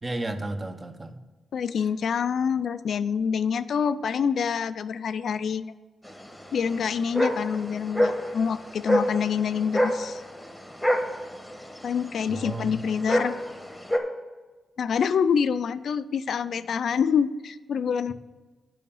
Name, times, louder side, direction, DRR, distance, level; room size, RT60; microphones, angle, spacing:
voice 1, 0.0-1.2 12.3-12.8, right 2 dB, 20° right, 8 dB, 0.7 m, -33 dB
voice 2, 1.5-5.7 6.5-10.2 11.8-13.3 14.8-18.1, left 7 dB, 65° left, 13 dB, 0.3 m, -26 dB
sound 1, 6.0-14.0, equal, 5° left, 1.1 m, -28 dB
9.1 x 5.6 x 5.5 m, 1.3 s
wide cardioid pair, 135°, 0 cm